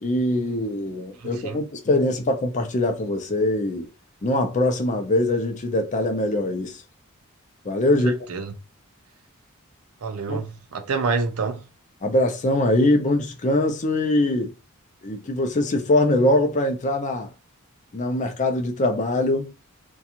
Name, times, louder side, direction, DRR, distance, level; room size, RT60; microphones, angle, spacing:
voice 1, 0.0-3.9 4.2-6.8 7.6-8.2 10.3-10.4 12.0-14.5 15.0-17.3 17.9-19.5, left 1 dB, 35° left, 0.5 m, -22 dB
voice 2, 1.2-1.6 8.0-8.5 10.0-11.6, right 4 dB, 85° right, 0.5 m, -28 dB
2.5 x 2.3 x 2.8 m
head